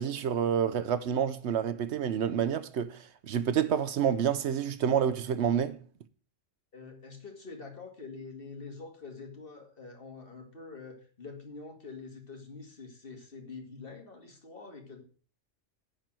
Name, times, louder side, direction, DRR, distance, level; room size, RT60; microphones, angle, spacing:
voice 1, 0.0-3.0 3.3-5.8, right 8 dB, 70° right, 0.9 m, -28 dB
voice 2, 6.7-15.0, left 4 dB, 50° left, 2.2 m, -46 dB
10.0 x 4.5 x 7.5 m
omnidirectional pair, 1.3 m